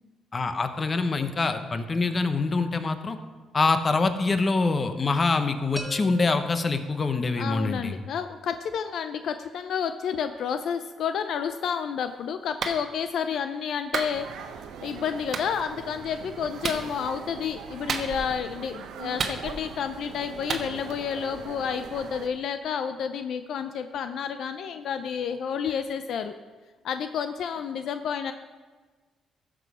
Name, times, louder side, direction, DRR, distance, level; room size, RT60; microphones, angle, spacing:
voice 1, 0.3-3.2 3.5-8.0, left 3 dB, 35° left, 9 dB, 0.9 m, -25 dB
sound 1, 5.8-7.6, left 1 dB, 5° right, 1.8 m, -41 dB
voice 2, 7.4-14.3 14.5-26.3 26.8-28.3, left 7 dB, 70° left, 9 dB, 0.5 m, -30 dB
Clapping, 12.6-12.8 13.9-14.1 15.3-15.5 16.6-16.9 17.9-18.4 19.2-19.8 20.5-20.7, right 5 dB, 55° right, 1.1 m, -30 dB
sound 2, 14.1-22.3, right 7 dB, 80° right, 0.8 m, -41 dB
15.0 x 6.2 x 4.9 m, 1.3 s
cardioid pair, 90°, 0 cm